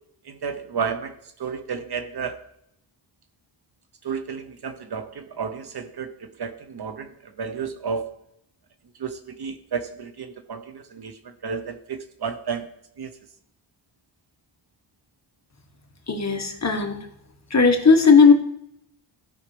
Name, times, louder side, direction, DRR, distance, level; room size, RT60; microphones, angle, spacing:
voice 1, 0.2-2.4 4.0-8.1 9.0-12.7 13.0-13.1, right 6 dB, 55° right, 9 dB, 0.9 m, -32 dB
voice 2, 16.1-17.0 17.5-18.3, left 5 dB, 35° left, 4 dB, 1.4 m, -16 dB
16.5 x 5.6 x 3.3 m, 0.77 s
wide cardioid pair, 95°, 47 cm